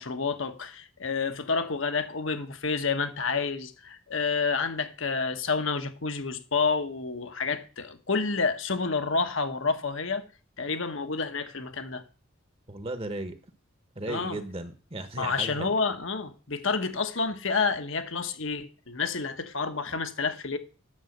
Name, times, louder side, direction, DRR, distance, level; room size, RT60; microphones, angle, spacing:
voice 1, 0.0-10.2 10.6-12.0 14.1-14.4 15.2-20.6, left 4 dB, 65° left, 1.2 m, -29 dB
voice 2, 12.7-13.4 14.0-15.7, right 2 dB, 25° right, 1.0 m, -35 dB
9.9 x 7.1 x 6.6 m
head